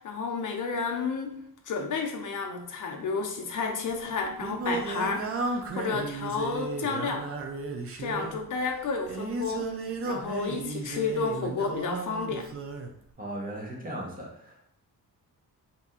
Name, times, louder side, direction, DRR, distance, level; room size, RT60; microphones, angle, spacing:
voice 1, 0.0-1.4 1.7-7.2 8.0-9.7 10.0-12.5, left 4 dB, 55° left, 3 dB, 0.6 m, -31 dB
Singing, 3.9-12.9, right 3 dB, 40° right, 0.4 m, -34 dB
voice 2, 13.2-14.7, right 1 dB, 20° right, -2 dB, 0.9 m, -37 dB
2.8 x 2.5 x 3.6 m, 0.68 s
wide cardioid pair, 140°, 38 cm